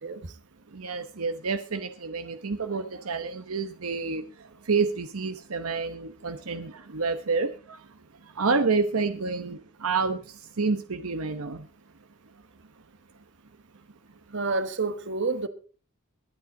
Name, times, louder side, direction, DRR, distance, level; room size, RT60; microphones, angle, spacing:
voice 1, 0.0-0.3 14.3-15.5, right 3 dB, 60° right, 1.4 m, -29 dB
voice 2, 0.7-7.9 8.2-11.7, right 4 dB, 75° right, 1.0 m, -29 dB
22.0 x 8.7 x 3.8 m
head